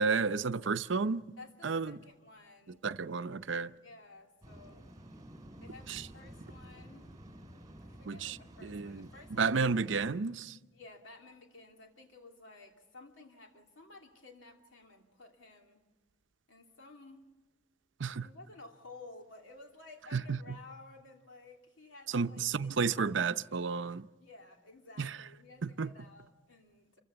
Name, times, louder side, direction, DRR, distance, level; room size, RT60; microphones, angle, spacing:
voice 1, 0.0-1.3 1.6-2.0 2.8-3.7 5.9-6.0 8.1-9.1 9.4-10.6 18.0-18.3 20.1-20.4 22.1-24.1 25.0-25.2 25.6-25.9, right 5 dB, 70° right, 0.7 m, -32 dB
voice 2, 1.4-2.8 3.7-4.9 5.6-7.2 7.8-9.9 10.7-15.8 16.5-17.3 18.2-23.1 24.2-27.0, left 3 dB, 90° left, 2.8 m, -54 dB
Waves surf, 4.4-10.1, right 1 dB, 20° right, 3.1 m, -51 dB
28.5 x 15.5 x 7.0 m
head